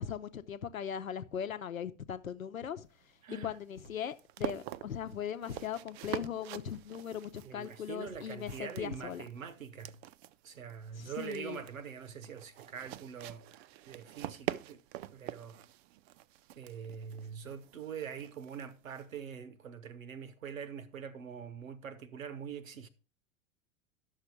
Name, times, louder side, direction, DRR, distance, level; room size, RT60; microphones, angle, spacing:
voice 1, 0.0-2.9 3.4-9.2 11.0-11.6, left 8 dB, 85° left, 0.9 m, -39 dB
sound 1, 2.8-19.2, right 14 dB, 50° right, 0.6 m, -46 dB
voice 2, 3.2-3.6 7.4-10.0 10.4-13.5 13.9-14.8 15.1-15.6 16.6-22.9, right 7 dB, 80° right, 1.2 m, -44 dB
11.5 x 6.6 x 4.5 m
figure-of-eight pair, 90°, 40 cm